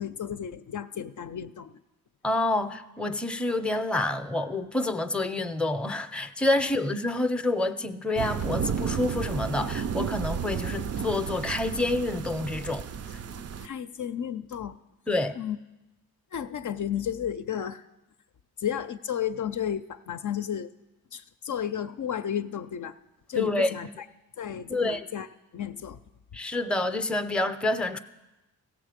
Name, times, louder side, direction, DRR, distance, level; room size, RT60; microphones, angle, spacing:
voice 1, 0.0-1.7 6.6-6.8 13.3-14.8 15.4-15.6 16.3-17.9 18.6-20.7 21.1-23.0 23.3-24.1 24.4-25.3 25.5-26.0, left 9 dB, 55° left, 0.5 m, -33 dB
voice 2, 2.2-12.8 15.1-15.3 23.4-23.7 24.7-25.1 26.3-28.0, left 2 dB, 5° left, 0.6 m, -28 dB
sound 1, 8.2-13.7, right 7 dB, 45° right, 0.4 m, -32 dB
16.0 x 6.8 x 5.1 m
cardioid pair, 55°, 36 cm